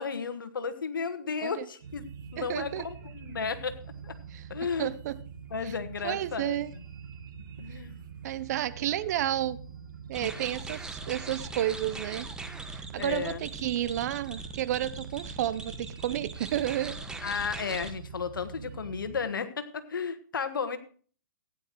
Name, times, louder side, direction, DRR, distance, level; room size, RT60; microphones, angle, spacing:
voice 1, 0.0-2.0 2.3-3.8 4.0-4.2 4.5-4.9 5.5-6.8 7.6-7.9 10.2-10.3 13.0-13.4 17.2-20.8, left 5 dB, 85° left, 10 dB, 1.4 m, -33 dB
sound 1, 1.8-19.2, right 6 dB, 70° right, 1.7 m, -45 dB
voice 2, 2.4-2.9 4.3-4.4 4.8-5.2 5.6-5.7 6.0-6.7 8.2-9.6 10.1-12.3 12.7-17.0, right 12 dB, 55° right, 15 dB, 0.7 m, -31 dB
sound 2, 10.1-17.9, right 3 dB, 5° right, 1.0 m, -41 dB
16.0 x 9.8 x 3.0 m, 0.43 s
hypercardioid pair, 130°, 11 cm